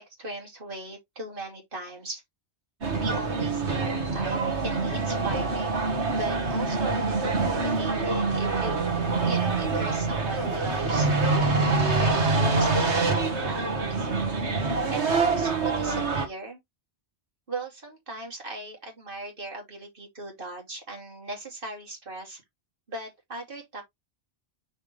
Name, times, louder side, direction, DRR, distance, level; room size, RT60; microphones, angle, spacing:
voice 1, 0.0-2.2 3.0-11.1 12.0-14.1 14.9-16.6 17.5-22.4 22.9-23.8, right 2 dB, 55° right, 2.9 m, -38 dB
sound 1, 2.8-16.3, right 3 dB, 90° right, 2.0 m, -25 dB
6.3 x 5.2 x 3.2 m
omnidirectional pair, 1.1 m